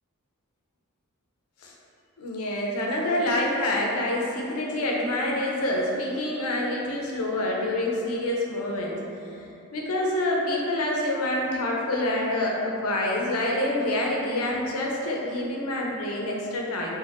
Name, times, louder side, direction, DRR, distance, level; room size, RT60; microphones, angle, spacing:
voice 1, 2.2-9.0 9.7-17.0, left 1 dB, 70° left, -2 dB, 0.5 m, -27 dB
2.4 x 2.2 x 3.3 m, 2.7 s
head